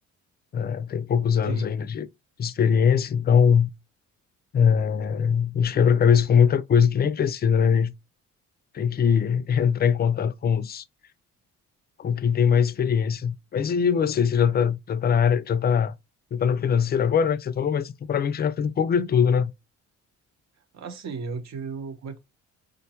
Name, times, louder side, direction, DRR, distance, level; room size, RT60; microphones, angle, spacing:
voice 1, 0.5-2.1 2.4-3.7 4.5-7.9 8.7-10.8 12.0-15.9 16.3-19.5, left 7 dB, 35° left, 0.4 m, -22 dB
voice 2, 20.7-22.2, right 5 dB, 60° right, 0.9 m, -34 dB
5.1 x 2.2 x 2.8 m
cardioid pair, 90°, 30 cm